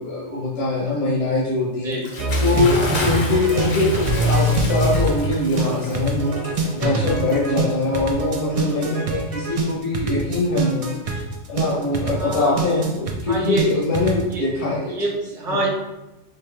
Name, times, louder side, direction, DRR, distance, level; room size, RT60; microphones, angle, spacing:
voice 1, 0.0-1.9 2.4-6.4 6.7-11.0 11.5-14.9 15.5-15.6, left 2 dB, 70° left, -6 dB, 1.2 m, -23 dB
Bathtub (filling or washing) / Splash splatter, 1.9-7.9, left 1 dB, 45° left, 0.7 m, -31 dB
sound 1, 2.2-14.3, right 2 dB, 65° right, 0.3 m, -24 dB
voice 2, 8.5-8.9 12.1-12.6 13.3-13.7 14.3-14.4 14.8-15.7, right 1 dB, 5° right, -4 dB, 0.6 m, -26 dB
4.1 x 2.7 x 3.3 m, 0.98 s
omnidirectional pair, 1.2 m